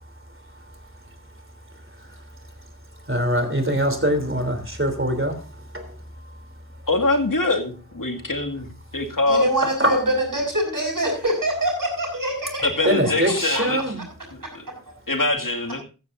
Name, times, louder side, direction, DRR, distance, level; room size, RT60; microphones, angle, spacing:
voice 1, 3.1-5.3 9.8-9.9 12.8-14.0, equal, 35° right, 6 dB, 3.3 m, -22 dB
voice 2, 6.9-9.5 12.6-13.9 14.3-14.6 15.1-15.8, left 2 dB, 65° left, 3 dB, 2.2 m, -24 dB
voice 3, 9.3-12.9 13.5-13.6 14.4-14.5, right 1 dB, 65° right, 1 dB, 6.4 m, -24 dB
14.5 x 14.0 x 2.6 m, 0.34 s
wide cardioid pair, 45°, 35 cm